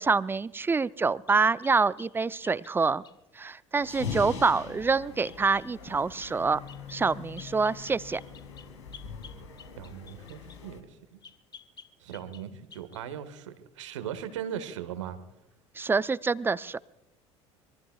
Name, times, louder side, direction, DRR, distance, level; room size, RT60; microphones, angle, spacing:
voice 1, 0.0-3.0 3.4-6.6 6.9-8.2 15.8-16.8, right 4 dB, 15° right, 20 dB, 0.5 m, -26 dB
sound 1, 1.3-3.2 5.2-5.7 6.2-6.4 6.7-7.0 7.4-10.6 11.2-12.5 12.7-13.0, left 6 dB, 25° left, 1.0 m, -50 dB
sound 2, 3.8-10.8, left 5 dB, 70° left, 2.5 m, -42 dB
voice 2, 9.8-10.8 12.0-15.2, right 9 dB, 70° right, 11 dB, 1.5 m, -38 dB
25.5 x 22.5 x 2.3 m, 0.92 s
figure-of-eight pair, 65°, 16 cm